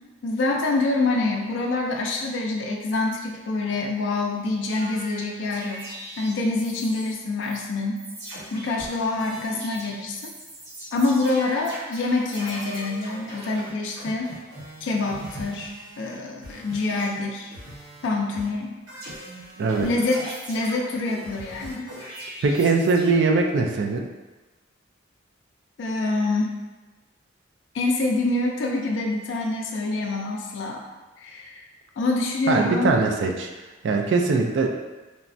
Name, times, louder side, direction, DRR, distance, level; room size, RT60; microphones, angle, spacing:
voice 1, 0.2-5.9 6.2-8.0 8.5-10.2 10.9-14.3 14.8-17.5 18.0-18.7 19.8-21.9 25.8-26.5 27.7-30.8 31.2-31.6 32.0-32.9 33.2-33.3, left 2 dB, 70° left, 0 dB, 0.3 m, -26 dB
sound 1, 4.7-7.2 7.4-7.6 8.0-16.1 16.4-18.1 18.3-23.1, right 1 dB, 80° right, 1.1 m, -40 dB
voice 2, 22.4-24.1 32.5-33.5 33.8-34.7, right 4 dB, 60° right, 2 dB, 0.3 m, -21 dB
3.3 x 2.0 x 2.5 m, 1.2 s
head